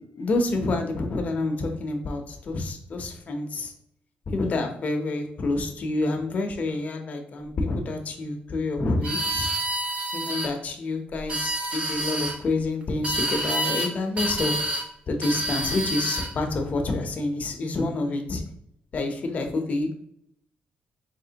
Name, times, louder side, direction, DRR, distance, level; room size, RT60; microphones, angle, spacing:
voice 1, 0.2-3.7 4.3-9.5 10.1-14.7 15.1-18.4 18.9-19.9, left 2 dB, 40° left, 4 dB, 0.7 m, -28 dB
sound 1, 9.0-10.5 11.2-12.4 13.0-13.9 14.2-14.9 15.2-16.3, right 1 dB, 35° right, 0.6 m, -28 dB
4.2 x 3.2 x 2.8 m, 0.73 s
cardioid pair, 150°, 4 cm